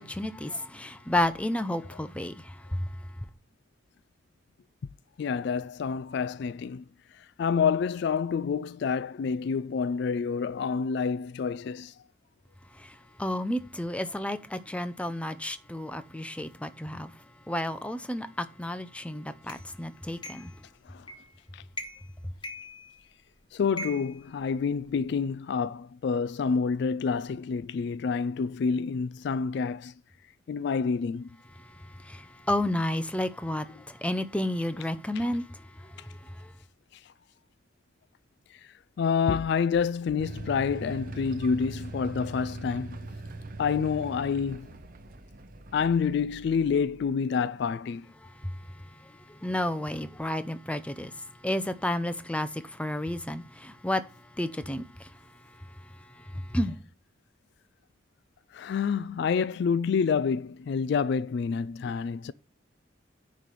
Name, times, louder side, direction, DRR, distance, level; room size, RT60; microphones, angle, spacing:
voice 1, 0.0-2.9 12.8-17.1 17.5-20.5 31.6-36.5 48.2-48.6 49.0-54.0 54.4-55.1 56.2-56.8, left 1 dB, 5° left, 0.6 m, -32 dB
voice 2, 5.2-6.8 7.4-11.9 20.9-21.0 21.5-21.6 23.5-29.9 30.5-31.3 39.0-43.0 43.6-44.7 45.7-48.0 58.5-62.3, left 6 dB, 60° left, 0.3 m, -28 dB
sound 1, 19.5-19.6 20.2-20.6 21.1-21.4 21.7-22.1 22.4-23.2 23.8-25.0, equal, 25° left, 1.2 m, -41 dB
sound 2, 40.2-47.1, right 2 dB, 45° right, 0.9 m, -41 dB
9.7 x 3.3 x 6.8 m
head